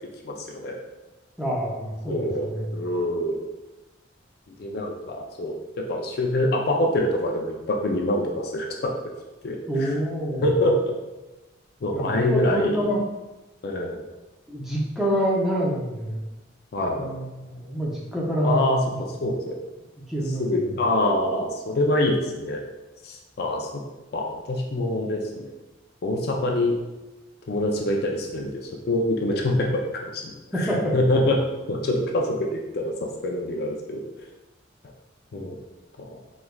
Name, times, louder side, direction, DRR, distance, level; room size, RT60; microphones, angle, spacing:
voice 1, 0.2-0.8 2.1-3.5 4.6-5.5 5.9-8.9 9.4-10.0 10.4-10.9 11.8-12.9 13.6-14.0 16.7-17.1 18.4-18.8 19.2-19.6 20.4-22.6 23.0-23.8 24.1-25.5 26.0-26.8 27.5-30.2 30.5-31.4 31.7-34.3 35.3-35.6 36.0-36.2, left 1 dB, 50° left, 1 dB, 0.4 m, -25 dB
voice 2, 1.4-2.6 9.7-10.4 11.9-13.0 14.5-16.2 16.9-18.6 20.1-20.4 30.7-30.9, equal, ahead, -5 dB, 0.5 m, -26 dB
3.4 x 3.1 x 2.3 m, 1.1 s
head